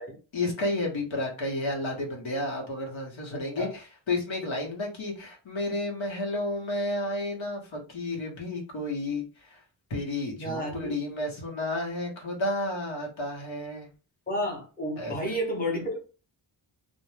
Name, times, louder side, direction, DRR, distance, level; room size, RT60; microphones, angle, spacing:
voice 1, 0.3-9.6 9.9-13.9 15.0-15.2, left 2 dB, 75° left, 1.0 m, -31 dB
voice 2, 3.3-3.7 10.4-10.9 14.3-16.0, equal, 20° left, 0.8 m, -31 dB
2.5 x 2.1 x 3.1 m
wide cardioid pair, 160°, 48 cm